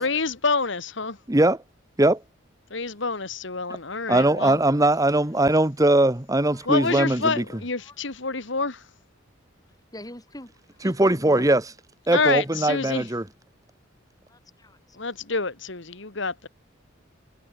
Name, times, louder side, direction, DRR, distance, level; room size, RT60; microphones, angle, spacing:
voice 1, 0.0-1.2 2.7-4.6 6.7-8.8 12.1-13.0 15.0-16.5, left 4 dB, 60° left, 1.8 m, -27 dB
voice 2, 1.3-1.6 2.0-2.2 4.1-7.4 10.8-11.7 12.1-13.3, right 1 dB, 15° right, 1.2 m, -20 dB
voice 3, 9.9-10.5 10.8-11.5 14.3-14.8, left 1 dB, 20° left, 6.4 m, -42 dB
head